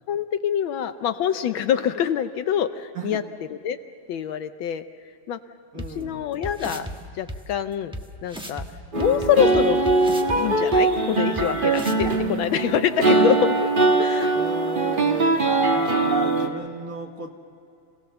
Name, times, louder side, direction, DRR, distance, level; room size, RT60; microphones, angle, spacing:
voice 1, 0.1-3.2 3.6-3.8 4.1-4.8 5.3-5.4 5.7-6.9 7.1-8.0 8.2-8.6 8.9-9.8 10.3-12.1 12.4-13.5 14.0-14.4, left 9 dB, 70° left, 10 dB, 1.3 m, -25 dB
voice 2, 5.7-6.3 14.3-17.3, right 2 dB, 45° right, 3 dB, 1.3 m, -32 dB
sound 1, 5.8-5.9 6.4-6.9 7.3-7.4 7.9-8.0 8.3-8.7 9.0-10.4 10.7-10.8 11.4-11.5 11.7-12.1, equal, 5° right, 0.7 m, -33 dB
sound 2, 8.9-16.5, right 3 dB, 25° right, 1.4 m, -21 dB
27.0 x 17.5 x 6.8 m, 2.4 s
omnidirectional pair, 2.4 m